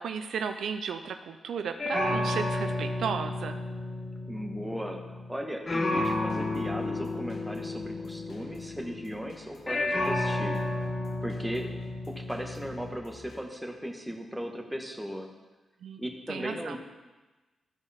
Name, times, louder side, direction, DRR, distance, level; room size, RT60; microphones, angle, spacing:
voice 1, 0.0-3.6 15.8-16.0 16.3-16.8, right 6 dB, 80° right, 7 dB, 0.5 m, -34 dB
sound 1, 1.8-5.4 5.7-9.2 9.7-13.0, left 2 dB, 40° left, 1.3 m, -32 dB
voice 2, 4.3-10.5 11.2-11.7 12.1-15.3 16.0-16.8, equal, 5° right, 2 dB, 1.5 m, -37 dB
sound 2, 6.0-13.4, left 2 dB, 70° left, 2.0 m, -53 dB
14.0 x 4.8 x 4.3 m, 1.2 s
cardioid pair, 70°, 0 cm